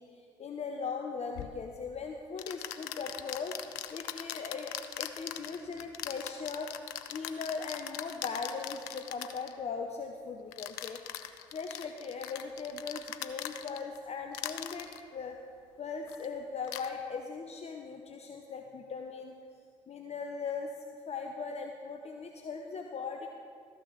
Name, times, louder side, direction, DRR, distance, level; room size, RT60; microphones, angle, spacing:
voice 1, 0.0-3.5 3.9-6.7 7.1-11.2 11.5-15.4 15.8-19.3 19.9-20.7 21.1-23.3, left 5 dB, 40° left, 3 dB, 0.8 m, -39 dB
sound 1, 1.3-1.5 2.4-9.5 10.5-14.0 14.3-15.0 16.1-16.3 16.6-16.9, left 13 dB, 75° left, 0.5 m, -41 dB
13.5 x 6.4 x 5.9 m, 2.1 s
hypercardioid pair, 50°, 16 cm